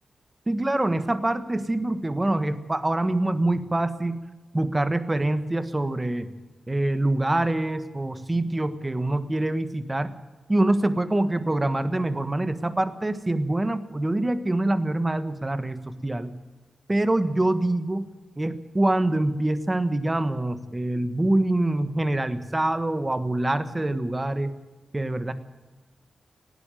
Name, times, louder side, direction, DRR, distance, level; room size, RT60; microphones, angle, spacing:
voice 1, 0.5-4.2 4.5-6.3 6.7-10.1 10.5-16.3 16.9-18.1 18.4-24.5 24.9-25.3, right 1 dB, 15° right, 11 dB, 1.4 m, -25 dB
19.0 x 15.0 x 9.1 m, 1.2 s
wide cardioid pair, 140°, 0 cm